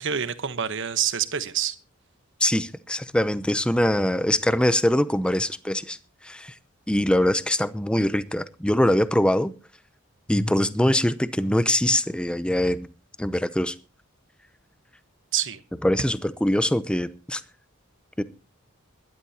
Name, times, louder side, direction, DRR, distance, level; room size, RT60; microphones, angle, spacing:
voice 1, 0.0-1.7 15.3-15.6, right 9 dB, 60° right, 1.1 m, -27 dB
voice 2, 2.4-6.0 6.2-6.5 6.9-9.5 10.3-12.9 13.2-13.7 15.8-17.4 18.2-18.3, left 1 dB, 5° left, 0.6 m, -23 dB
21.0 x 12.0 x 2.9 m
head